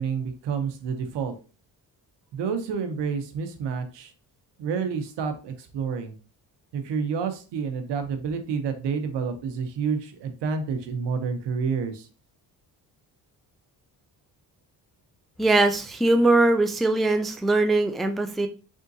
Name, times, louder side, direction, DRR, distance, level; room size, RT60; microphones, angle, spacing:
voice 1, 0.0-1.3 2.3-4.1 4.6-6.2 6.7-12.1, right 6 dB, 80° right, 8 dB, 0.9 m, -29 dB
voice 2, 15.4-18.5, right 2 dB, ahead, 6 dB, 0.3 m, -21 dB
3.7 x 3.6 x 2.7 m, 0.35 s
cardioid pair, 95°, 42 cm